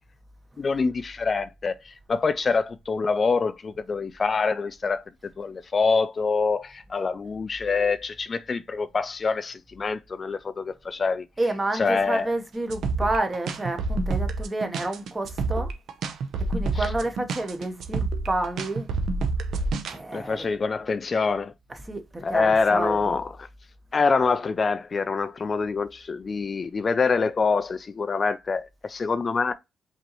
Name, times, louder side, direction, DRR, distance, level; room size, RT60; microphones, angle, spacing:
voice 1, 0.6-5.0 5.4-11.2 11.7-12.3 16.7-16.9 20.1-21.5 22.2-23.5 23.9-29.5, left 4 dB, 35° left, 0.3 m, -25 dB
voice 2, 11.4-15.7 16.5-18.9 19.9-20.4 21.9-23.1, right 2 dB, 20° right, 0.9 m, -29 dB
sound 1, 12.7-20.0, right 3 dB, 70° right, 0.7 m, -28 dB
5.2 x 2.8 x 2.9 m
cardioid pair, 90°, 0 cm